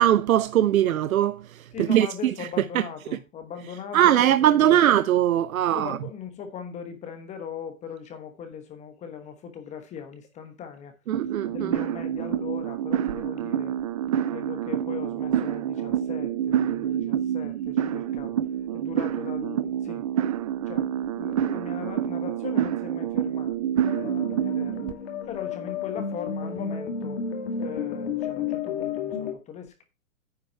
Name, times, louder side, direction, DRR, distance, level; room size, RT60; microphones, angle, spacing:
voice 1, 0.0-1.4 1.8-2.1 2.7-2.8 3.9-6.0 11.1-11.7, right 11 dB, 85° right, 0.6 m, -20 dB
voice 2, 1.7-5.0 5.5-10.9 11.5-13.7 14.3-18.4 18.7-20.1 20.7-23.5 23.8-24.9 25.3-27.2 27.6-29.8, left 7 dB, 15° left, 1.1 m, -39 dB
sound 1, 11.1-24.9, right 10 dB, 30° right, 0.4 m, -27 dB
sound 2, 23.8-29.3, left 6 dB, 50° left, 2.3 m, -32 dB
9.8 x 5.5 x 4.4 m
hypercardioid pair, 140°, 41 cm